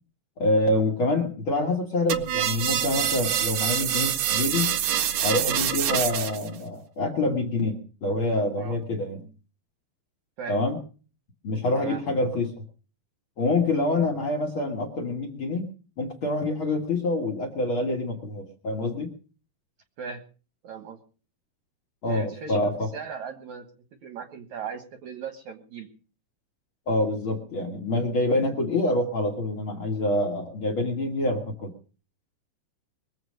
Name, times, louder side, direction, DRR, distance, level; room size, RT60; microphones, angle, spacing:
voice 1, 0.4-4.7 5.2-9.3 10.5-10.8 11.4-12.5 13.4-15.7 16.0-19.1 22.0-22.9 26.9-31.7, left 2 dB, 70° left, 2 dB, 1.2 m, -26 dB
sound 1, 2.1-6.5, right 10 dB, 85° right, 1.7 m, -26 dB
voice 2, 20.6-21.0 22.0-23.7 24.0-25.9, right 6 dB, 70° right, 7 dB, 1.8 m, -38 dB
23.0 x 7.9 x 6.5 m, 0.39 s
omnidirectional pair, 5.3 m